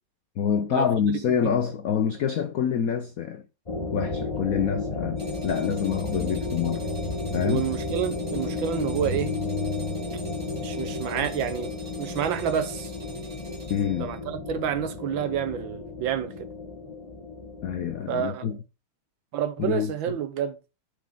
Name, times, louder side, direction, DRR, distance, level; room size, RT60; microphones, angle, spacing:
voice 1, 0.4-3.4 3.9-6.9 7.3-7.7 13.7-14.1 17.6-18.6 19.6-20.2, left 8 dB, 75° left, 0.8 m, -26 dB
sound 1, 3.7-18.0, left 2 dB, 25° left, 0.9 m, -32 dB
sound 2, 5.2-14.2, right 2 dB, 45° right, 2.9 m, -48 dB
voice 2, 7.4-9.3 10.6-11.7 12.0-12.9 14.0-16.3 18.1-18.6 19.3-20.6, right 9 dB, 70° right, 1.6 m, -29 dB
9.0 x 5.1 x 3.7 m
omnidirectional pair, 2.3 m